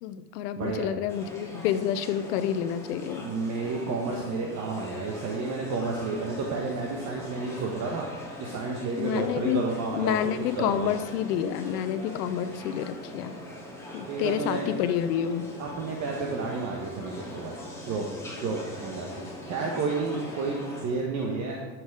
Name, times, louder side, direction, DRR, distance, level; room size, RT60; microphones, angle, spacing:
voice 1, 0.0-3.3 9.0-9.6 9.9-13.3 13.9-15.6, left 10 dB, 65° left, 11 dB, 0.9 m, -29 dB
voice 2, 0.6-0.9 3.2-8.1 8.4-10.9 14.1-14.7 15.6-18.0 18.4-21.7, right 4 dB, 35° right, -1 dB, 1.4 m, -31 dB
sound 1, 1.1-20.8, left 1 dB, 5° left, 2.5 m, -42 dB
12.0 x 6.4 x 4.8 m, 1.2 s
supercardioid pair, 125°, 50 cm